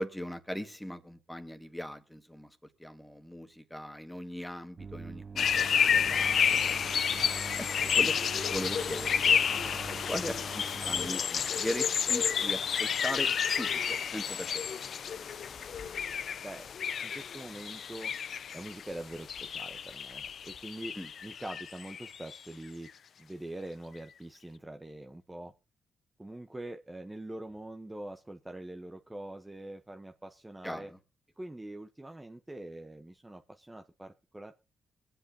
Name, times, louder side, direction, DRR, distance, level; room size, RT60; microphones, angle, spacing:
voice 1, 0.0-7.2 7.6-8.1 8.4-9.8 10.1-14.6 21.0-21.1 30.6-31.0, equal, 5° left, 7 dB, 1.8 m, -39 dB
sound 1, 4.8-11.1, right 5 dB, 45° right, 0.5 m, -44 dB
sound 2, 5.4-22.4, left 7 dB, 65° left, 0.6 m, -30 dB
voice 2, 17.0-18.1 18.5-21.0 21.2-22.9 23.2-25.5 26.2-30.9 31.4-34.5, right 1 dB, 15° right, 5 dB, 1.0 m, -44 dB
22.0 x 8.0 x 2.8 m, 0.30 s
cardioid pair, 75°, 0 cm